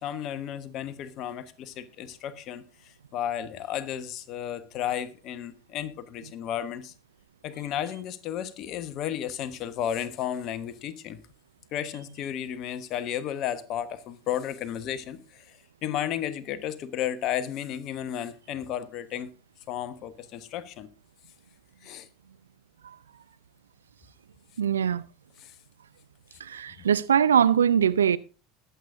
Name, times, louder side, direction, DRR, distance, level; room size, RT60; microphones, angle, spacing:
voice 1, 0.0-6.9 7.4-11.2 11.7-19.3 19.7-20.9 21.8-22.1 25.4-25.6 26.8-26.9, left 10 dB, 50° left, 1.2 m, -33 dB
voice 2, 24.6-25.0 26.4-28.2, right 8 dB, 80° right, 0.5 m, -22 dB
20.5 x 8.1 x 2.6 m
figure-of-eight pair, 70°, 0 cm